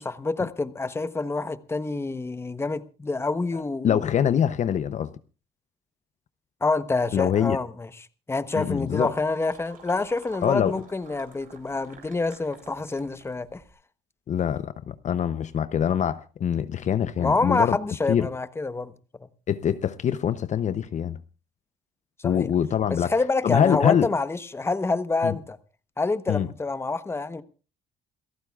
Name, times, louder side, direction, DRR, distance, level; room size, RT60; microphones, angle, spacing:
voice 1, 0.0-4.0 6.6-7.9 8.3-13.6 17.2-18.9 22.2-22.5 22.9-25.6 26.0-27.4, left 3 dB, 15° left, 1.0 m, -27 dB
voice 2, 3.8-5.1 7.1-7.6 8.5-9.1 10.4-10.8 14.3-17.8 18.1-18.3 19.5-21.2 22.2-23.1 23.4-24.1 25.2-25.4 26.3-26.5, left 9 dB, 45° left, 0.7 m, -24 dB
sound 1, 8.4-13.7, right 6 dB, 55° right, 4.1 m, -50 dB
28.0 x 14.0 x 2.4 m
cardioid pair, 110°, 17 cm